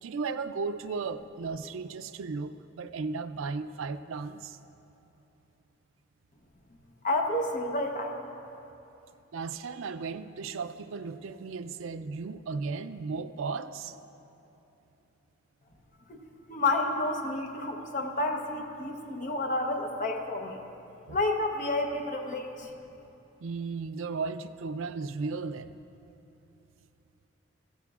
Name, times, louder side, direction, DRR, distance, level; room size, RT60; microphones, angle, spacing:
voice 1, 0.0-4.6 9.3-14.0 21.1-21.2 23.4-25.7, right 4 dB, 80° right, 10 dB, 0.4 m, -35 dB
voice 2, 7.0-8.2 16.1-16.2 16.5-20.6 21.1-22.7, left 2 dB, 40° left, 3 dB, 0.8 m, -30 dB
15.0 x 14.0 x 2.4 m, 2.9 s
head